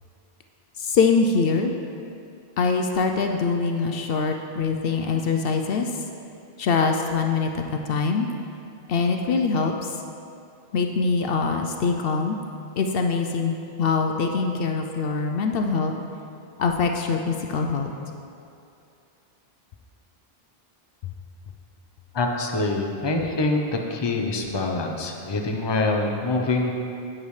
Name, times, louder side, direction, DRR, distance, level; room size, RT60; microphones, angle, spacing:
voice 1, 0.8-1.7 2.6-5.9 6.6-7.6 7.9-8.3 8.9-9.7 10.7-12.4 12.8-15.9 16.6-17.9, left 4 dB, 70° left, 3 dB, 0.8 m, -23 dB
voice 2, 22.1-26.7, left 2 dB, 30° left, 2 dB, 0.7 m, -25 dB
10.5 x 8.5 x 3.2 m, 2.7 s
omnidirectional pair, 1.0 m